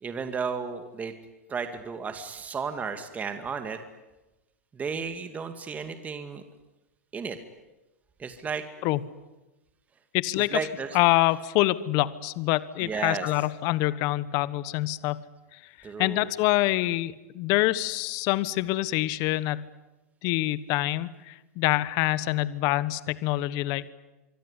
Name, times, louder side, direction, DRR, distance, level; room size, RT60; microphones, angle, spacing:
voice 1, 0.0-1.1 1.5-3.8 4.7-6.4 7.1-7.4 8.2-8.6 10.4-10.9 12.8-13.3 15.8-16.3, right 5 dB, 20° right, 8 dB, 2.2 m, -33 dB
voice 2, 10.1-10.6 10.9-15.2 15.5-15.6 16.0-19.7 20.2-23.9, left 17 dB, 45° left, 17 dB, 1.3 m, -26 dB
24.5 x 24.5 x 9.9 m, 1.0 s
hypercardioid pair, 130°, 8 cm